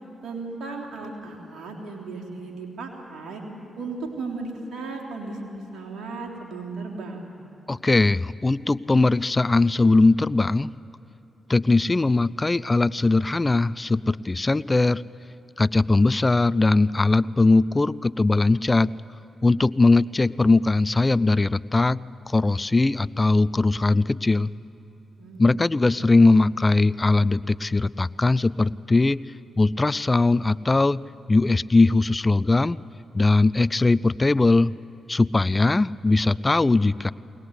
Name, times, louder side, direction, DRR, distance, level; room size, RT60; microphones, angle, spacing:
voice 1, 0.2-3.4 3.8-5.4 5.7-7.3 11.6-11.8 25.2-25.4, right 3 dB, 70° right, 0 dB, 3.3 m, -35 dB
voice 2, 7.7-10.7 11.5-15.1 15.6-18.9 19.4-22.0 22.3-24.5 25.4-29.2 29.6-31.0 31.3-32.8 33.1-34.7 35.1-37.1, left 3 dB, 30° left, 18 dB, 0.4 m, -20 dB
23.0 x 19.5 x 8.2 m, 2.8 s
supercardioid pair, 45°, 0 cm